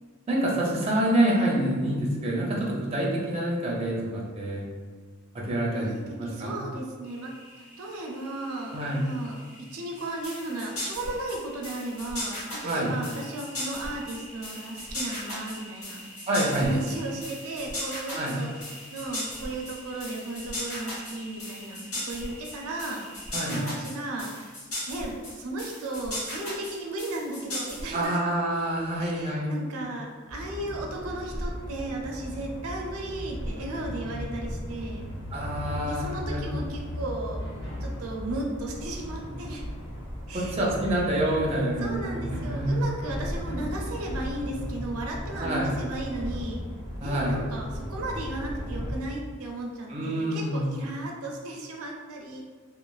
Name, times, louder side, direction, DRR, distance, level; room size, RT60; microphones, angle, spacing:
voice 1, 0.3-4.6 5.3-5.9 6.2-6.6 8.7-9.1 12.6-12.9 16.3-16.7 18.1-18.4 23.3-23.6 27.9-29.6 35.3-36.5 40.3-42.8 45.4-45.7 47.0-47.4 49.9-50.8, right 1 dB, 30° right, -4 dB, 0.4 m, -27 dB
voice 2, 5.8-9.4 9.7-16.3 16.6-23.0 23.4-24.6 24.9-28.2 29.0-35.1 35.8-37.4 37.8-39.6 40.3-40.6 41.8-46.6 47.0-52.4, right 2 dB, 90° right, 0 dB, 0.5 m, -35 dB
sound 1, 7.0-23.5, equal, 30° left, 1.2 m, -49 dB
sound 2, 10.0-28.1, left 1 dB, 90° left, 1.2 m, -37 dB
sound 3, 30.3-49.0, equal, 55° left, 0.7 m, -36 dB
3.1 x 2.0 x 2.3 m, 1.5 s
head